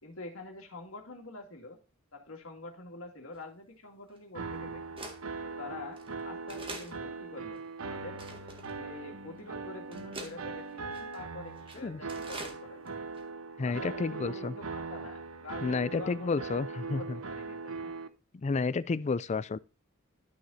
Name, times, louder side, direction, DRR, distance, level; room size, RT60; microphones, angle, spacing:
voice 1, 0.0-1.8 2.1-4.8 5.4-8.2 8.6-12.9 13.7-16.5 16.9-17.9, left 2 dB, 70° left, 2.3 m, -46 dB
sound 1, 3.3-3.4 4.2-4.3 5.0-5.2 5.9-6.1 6.5-6.9 7.5-7.6 8.2-8.7 9.4-9.5 9.9-10.3 10.9-11.2 11.6-11.8 12.1-12.6 12.9-13.0 13.1-13.2, right 2 dB, 25° right, 1.8 m, -43 dB
sound 2, 4.3-18.1, right 4 dB, 85° right, 0.9 m, -40 dB
voice 2, 13.6-14.5 15.6-17.2 18.3-19.6, left 4 dB, 35° left, 0.4 m, -31 dB
12.0 x 6.3 x 2.7 m
head